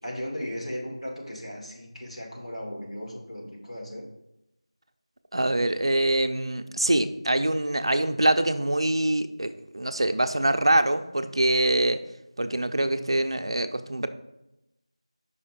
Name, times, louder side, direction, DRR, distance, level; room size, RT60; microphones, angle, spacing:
voice 1, 0.0-4.1, equal, 90° left, -1 dB, 2.0 m, -36 dB
voice 2, 5.3-12.0 12.4-14.1, right 1 dB, 55° right, 9 dB, 0.5 m, -24 dB
5.6 x 4.3 x 4.9 m, 0.89 s
figure-of-eight pair, 175°, 3 cm